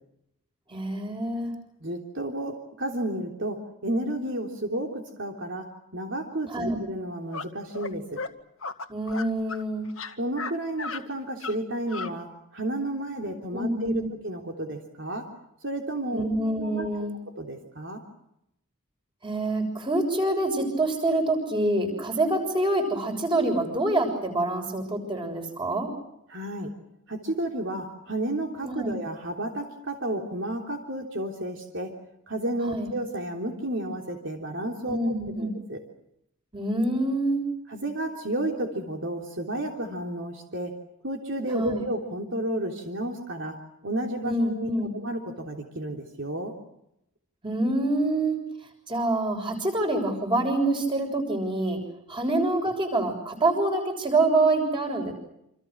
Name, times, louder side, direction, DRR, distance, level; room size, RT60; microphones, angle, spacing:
voice 1, 0.7-1.5 6.5-6.8 8.9-9.8 13.5-14.1 16.1-17.1 19.2-25.9 28.6-28.9 32.7-32.9 34.9-35.5 36.5-37.4 41.5-41.8 44.2-44.9 47.4-48.4 48.9-51.8 52.1-55.1, right 2 dB, 20° right, 5 dB, 6.7 m, -26 dB
voice 2, 1.8-8.2 10.2-15.3 15.6-16.3 16.6-16.9 17.4-18.0 26.3-26.7 27.1-31.9 32.3-35.8 37.7-40.8 41.0-43.6 43.8-44.7 45.0-46.5, right 1 dB, 55° right, 2 dB, 3.3 m, -32 dB
sound 1, 7.3-7.5 7.7-7.9 8.2-8.3 8.6-9.6 9.9-10.5 10.8-11.0 11.4-11.6 11.9-12.1, left 4 dB, 65° left, 1.8 m, -35 dB
28.0 x 27.5 x 6.3 m, 0.81 s
head